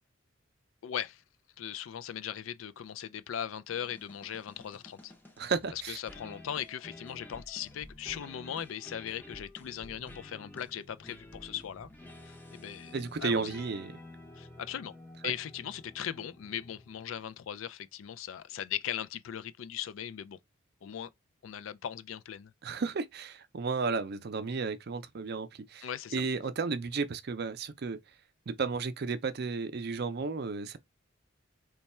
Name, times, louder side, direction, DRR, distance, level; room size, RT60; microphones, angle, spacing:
voice 1, 0.8-1.2 1.6-5.1 5.7-11.9 12.2-13.6 14.4-14.9 15.2-20.4 20.8-21.1 21.4-22.5 25.8-26.2, left 9 dB, 85° left, 0.4 m, -39 dB
sound 1, 3.7-17.2, left 1 dB, 10° left, 0.6 m, -51 dB
voice 2, 5.4-6.0 12.9-13.9 22.6-28.0 28.5-30.8, right 4 dB, 55° right, 0.5 m, -33 dB
3.2 x 2.2 x 4.2 m
head